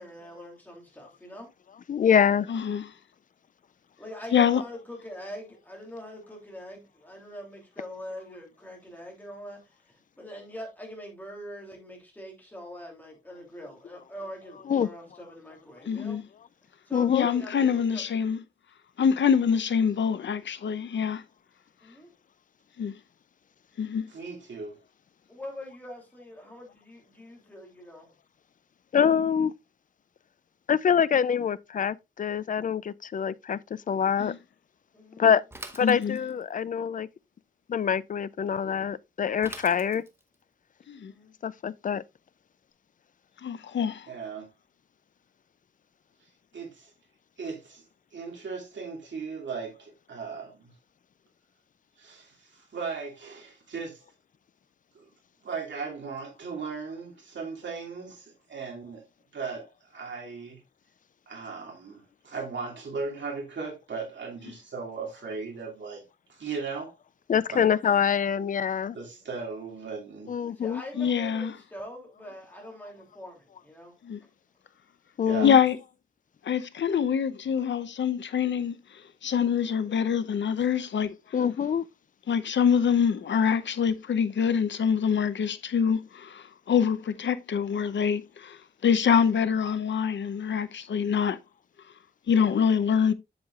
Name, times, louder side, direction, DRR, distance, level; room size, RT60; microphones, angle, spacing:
voice 1, 0.0-1.5 4.0-9.7 10.2-16.2 16.9-18.0 21.8-22.1 25.3-28.1 34.9-35.3 41.1-41.3 70.5-73.9, left 1 dB, 10° left, 2.9 m, -43 dB
voice 2, 1.9-2.5 14.7-14.9 16.9-17.3 28.9-29.5 30.7-34.3 35.2-35.4 35.7-37.1 37.7-40.0 41.4-42.0 67.3-69.0 70.3-70.8 75.2-75.6 81.3-81.8, left 7 dB, 45° left, 0.4 m, -25 dB
voice 3, 2.5-2.9 4.3-4.6 15.9-16.2 17.1-18.4 19.0-21.2 22.8-23.0 23.8-24.1 34.2-34.4 35.8-36.2 40.9-41.1 43.4-44.1 71.0-71.5 74.0-74.2 75.4-75.8 76.4-78.8 79.2-81.1 82.3-88.6 88.8-91.4 92.3-93.1, left 7 dB, 75° left, 0.7 m, -25 dB
voice 4, 24.1-24.8 44.1-44.5 46.5-46.9 47.4-47.8 48.1-50.7 52.0-54.0 54.9-55.1 55.4-59.0 59.3-60.6 61.3-66.0 66.3-66.9 67.5-67.7 68.9-70.3 75.3-75.6, right 5 dB, 75° right, 2.4 m, -37 dB
Bicycle / Mechanisms, 35.5-36.5 39.4-40.3, right 1 dB, 15° right, 0.8 m, -44 dB
7.8 x 7.3 x 2.4 m
wide cardioid pair, 145°, 19 cm